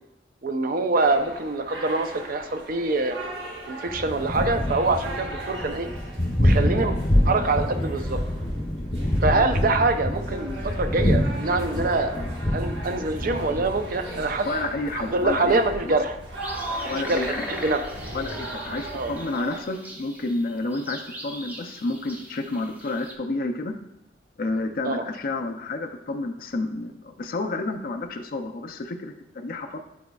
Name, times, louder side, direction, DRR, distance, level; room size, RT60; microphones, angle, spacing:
voice 1, 0.4-3.2 3.7-5.9 6.4-6.9 7.2-8.2 9.2-12.1 12.5-14.5 14.9-16.2 16.9-17.9 18.9-19.1 24.8-25.1, right 3 dB, 55° right, 7 dB, 0.5 m, -25 dB
sound 1, 1.0-19.6, right 1 dB, 85° right, 1.2 m, -39 dB
Thunder, 3.9-19.2, left 1 dB, 25° left, 0.8 m, -27 dB
voice 2, 14.5-16.0 16.9-17.4 18.1-23.8 24.4-29.8, left 2 dB, 55° left, 5 dB, 0.5 m, -30 dB
sound 2, 16.4-23.1, equal, 10° right, 0.7 m, -40 dB
10.5 x 4.2 x 2.3 m, 0.84 s
head